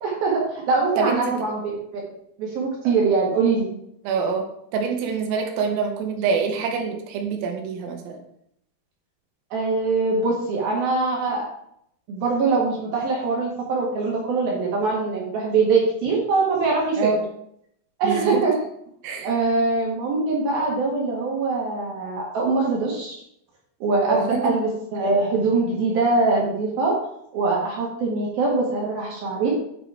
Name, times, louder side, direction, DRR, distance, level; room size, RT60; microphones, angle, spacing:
voice 1, 0.0-1.8 2.4-3.7 9.5-11.4 12.1-17.1 18.0-18.5 19.2-23.1 23.8-26.9 27.3-29.5, right 3 dB, 60° right, -2 dB, 2.8 m, -23 dB
voice 2, 1.0-1.4 2.9-3.0 4.0-4.5 4.7-8.2 17.0-17.2 18.0-18.4 19.0-19.3 24.1-24.6, right 5 dB, 90° right, 3 dB, 3.9 m, -25 dB
9.7 x 5.1 x 4.8 m, 0.72 s
omnidirectional pair, 5.8 m